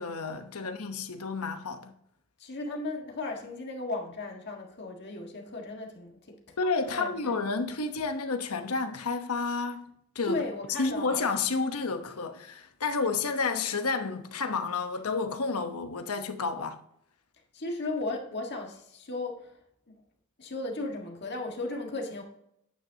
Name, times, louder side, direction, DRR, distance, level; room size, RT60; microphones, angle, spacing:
voice 1, 0.0-1.9 6.6-10.4 10.8-16.8, left 4 dB, 80° left, 1.0 m, -31 dB
voice 2, 2.4-6.4 6.9-7.3 10.2-11.3 17.5-19.5 20.4-22.2, left 2 dB, 50° left, 1.7 m, -35 dB
10.0 x 9.0 x 2.8 m
head